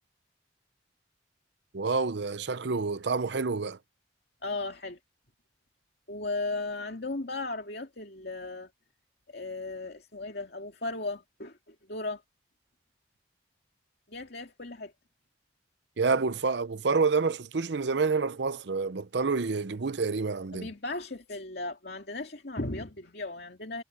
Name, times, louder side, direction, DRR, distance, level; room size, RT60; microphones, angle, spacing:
voice 1, 1.7-3.8 16.0-20.7, right 4 dB, 70° right, 0.7 m, -28 dB
voice 2, 4.4-5.0 6.1-8.7 9.3-12.2 14.1-14.9 20.5-23.8, left 2 dB, 60° left, 2.4 m, -36 dB
head